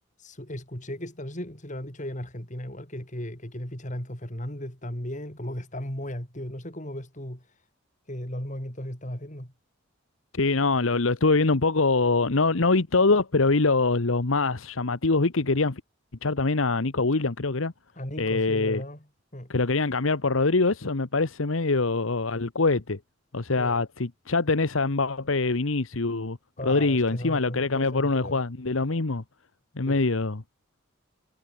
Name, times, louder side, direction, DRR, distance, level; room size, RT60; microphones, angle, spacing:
voice 1, 0.2-7.6 8.1-9.5 18.0-19.0 19.3-19.5 23.6-23.8 26.6-28.4 29.9-30.0, left 1 dB, 40° left, 5.3 m, -36 dB
voice 2, 10.3-15.8 16.2-17.7 18.2-18.8 19.5-23.0 23.3-26.4 26.6-29.2 29.8-30.4, left 3 dB, 85° left, 1.2 m, -24 dB
head